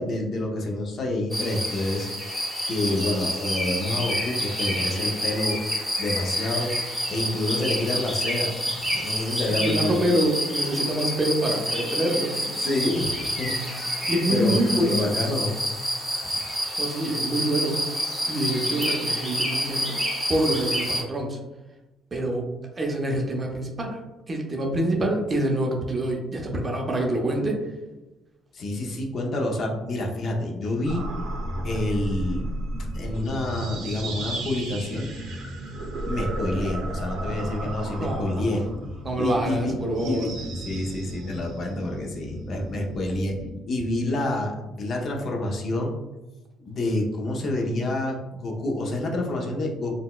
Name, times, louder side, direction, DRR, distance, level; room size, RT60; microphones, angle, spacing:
voice 1, 0.0-2.1 2.7-5.6 6.0-10.0 12.6-15.6 28.5-31.0 31.6-32.5 32.9-35.2 36.0-38.7 39.2-39.8 40.0-43.4 43.7-46.0 46.6-50.0, left 1 dB, 45° left, 1 dB, 0.5 m, -28 dB
sound 1, 1.3-21.0, equal, ahead, 0.8 m, -28 dB
voice 2, 9.5-12.4 14.1-15.1 16.0-16.1 16.8-20.0 20.3-21.4 22.1-22.5 22.8-24.0 24.3-27.6 38.0-38.4 39.0-40.3, right 1 dB, 25° right, 1 dB, 0.5 m, -26 dB
sound 2, 30.8-43.5, right 1 dB, 75° right, 0.7 m, -33 dB
3.8 x 2.1 x 2.2 m, 1.1 s
cardioid pair, 135°, 0 cm